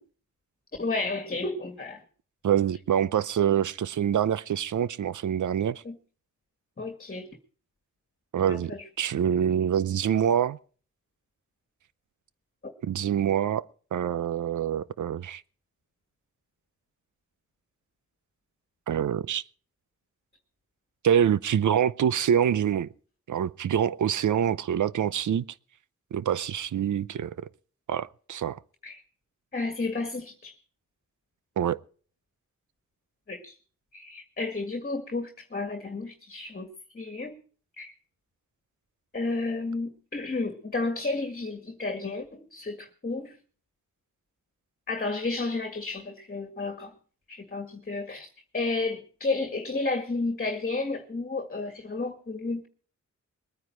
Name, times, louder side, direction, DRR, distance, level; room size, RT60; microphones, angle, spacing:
voice 1, 0.8-2.0 5.8-6.0 6.8-7.3 8.5-8.8 12.6-12.7 28.8-29.0 29.5-30.6 33.3-33.6 33.9-37.4 37.8-37.9 39.1-43.4 44.9-46.9 47.3-48.3 48.5-52.7, left 3 dB, 30° left, 1.8 m, -32 dB
voice 2, 2.4-5.8 8.3-8.7 9.0-10.6 12.8-15.4 18.9-19.4 21.0-22.9 23.3-25.4 26.1-27.5 27.9-28.6 31.6-31.8, right 9 dB, 75° right, 0.7 m, -25 dB
21.5 x 9.6 x 4.5 m
wide cardioid pair, 110°, 31 cm